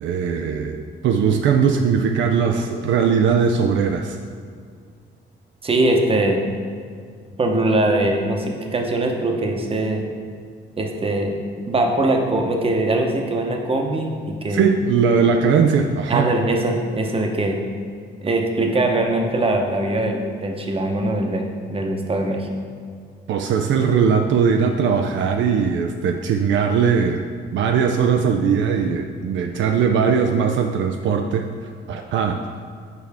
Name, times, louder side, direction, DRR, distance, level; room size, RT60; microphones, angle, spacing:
voice 1, 0.0-4.2 14.5-16.3 23.3-27.2 27.5-31.5 31.9-32.4, right 6 dB, 70° right, 4 dB, 0.4 m, -19 dB
voice 2, 5.6-6.4 7.4-10.0 10.8-11.3 11.7-14.6 16.1-17.6 18.2-22.5, right 2 dB, 30° right, 2 dB, 0.8 m, -21 dB
6.7 x 4.4 x 3.5 m, 2.1 s
cardioid pair, 90°, 20 cm